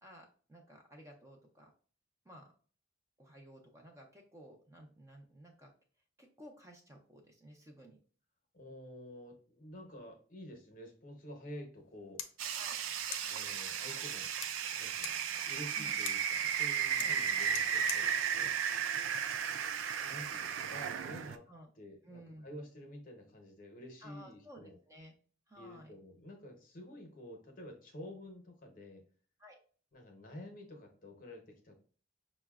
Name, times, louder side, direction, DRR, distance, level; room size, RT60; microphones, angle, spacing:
voice 1, 0.0-1.7 2.2-2.5 3.2-5.7 6.2-8.0 12.6-12.8 15.8-16.0 17.0-17.2 21.5-21.7 22.0-22.6 24.0-25.1 25.5-25.9 29.4-29.6, equal, 15° right, 2 dB, 0.5 m, -55 dB
voice 2, 8.5-12.2 13.3-15.1 15.5-18.6 20.0-21.4 21.8-24.8 25.6-29.0 29.9-31.7, left 1 dB, 45° left, 3 dB, 0.7 m, -50 dB
sound 1, 11.8-19.8, left 8 dB, 80° left, 0.4 m, -49 dB
sound 2, 12.4-21.4, right 8 dB, 85° right, 0.3 m, -35 dB
5.6 x 2.1 x 2.3 m, 0.42 s
head